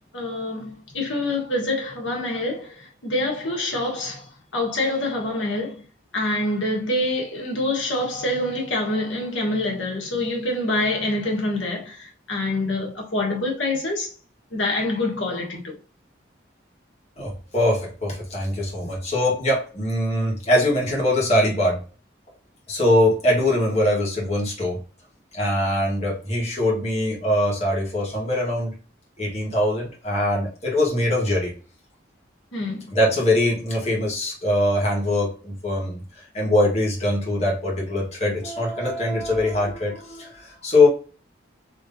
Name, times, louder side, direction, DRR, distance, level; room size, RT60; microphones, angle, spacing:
voice 1, 0.1-5.8 6.1-14.1 14.5-15.8 32.5-32.9, left 2 dB, 90° left, 1.3 m, -26 dB
voice 2, 17.2-21.8 22.7-24.8 25.3-28.7 29.2-31.5 32.9-40.9, left 1 dB, 35° left, 1.4 m, -22 dB
3.5 x 3.1 x 2.6 m
head